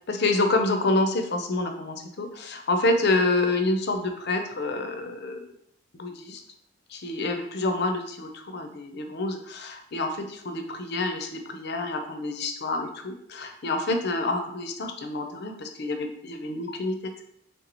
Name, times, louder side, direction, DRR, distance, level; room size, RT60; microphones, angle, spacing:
voice 1, 0.1-5.5 5.9-6.4 6.9-17.1, left 2 dB, 50° left, 5 dB, 0.5 m, -28 dB
3.6 x 2.9 x 3.9 m, 0.71 s
head